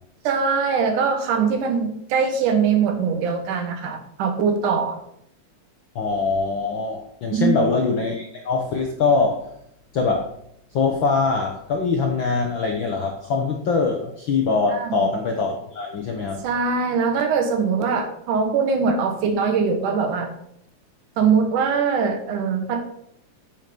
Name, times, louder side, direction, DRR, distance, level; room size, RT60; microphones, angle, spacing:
voice 1, 0.2-5.0 7.3-7.5 14.7-15.1 16.4-20.3 21.2-22.8, right 5 dB, 90° right, 6 dB, 2.9 m, -22 dB
voice 2, 5.9-9.4 9.9-10.3 10.7-16.4, left 4 dB, 70° left, 2 dB, 1.1 m, -23 dB
8.2 x 7.4 x 5.2 m, 0.72 s
omnidirectional pair, 3.5 m